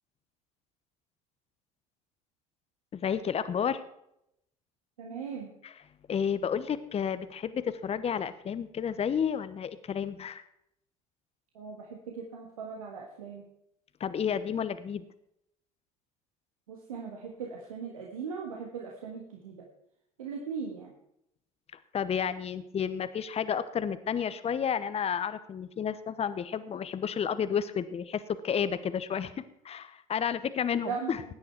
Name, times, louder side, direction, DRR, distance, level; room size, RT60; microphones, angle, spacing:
voice 1, 2.9-3.8 5.6-5.7 6.1-10.4 14.0-15.0 21.9-31.2, left 7 dB, 35° left, 13 dB, 0.9 m, -31 dB
voice 2, 5.0-5.5 11.5-13.4 16.7-19.5 20.2-20.9 30.8-31.2, right 6 dB, 85° right, 0 dB, 1.5 m, -39 dB
17.0 x 9.7 x 4.5 m, 0.78 s
hypercardioid pair, 60°, 18 cm